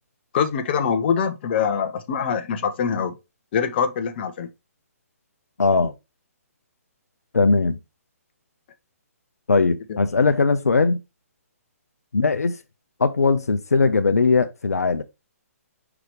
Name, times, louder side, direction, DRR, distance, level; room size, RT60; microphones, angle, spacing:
voice 1, 0.3-3.1 3.5-4.5, left 6 dB, 40° left, 1.1 m, -23 dB
voice 2, 5.6-5.9 7.3-7.8 9.5-11.0 12.1-12.6 13.0-15.0, left 4 dB, 80° left, 0.7 m, -19 dB
5.9 x 4.9 x 3.2 m
figure-of-eight pair, 140°, 8 cm